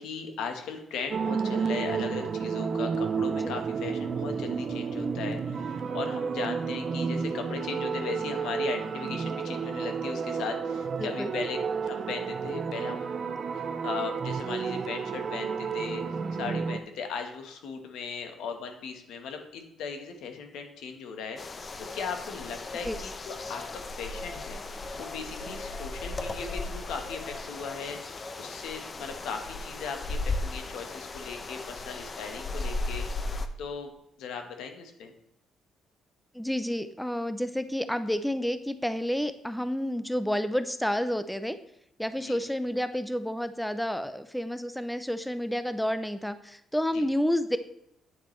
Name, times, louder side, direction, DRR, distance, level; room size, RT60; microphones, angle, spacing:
voice 1, 0.0-11.6 11.8-13.1 13.5-21.4 21.8-24.6 25.0-33.1 33.6-33.9 34.2-35.1 42.2-42.4 46.9-47.0, left 5 dB, 85° left, 5 dB, 1.1 m, -38 dB
sound 1, 1.1-16.8, right 5 dB, 45° right, 0.6 m, -31 dB
voice 2, 11.0-11.3 22.8-23.0 36.3-41.6 42.0-47.6, equal, 5° left, 11 dB, 0.5 m, -30 dB
sound 2, 21.4-33.5, left 2 dB, 35° left, 0.7 m, -36 dB
9.0 x 7.3 x 3.1 m, 0.79 s
cardioid pair, 90°, 0 cm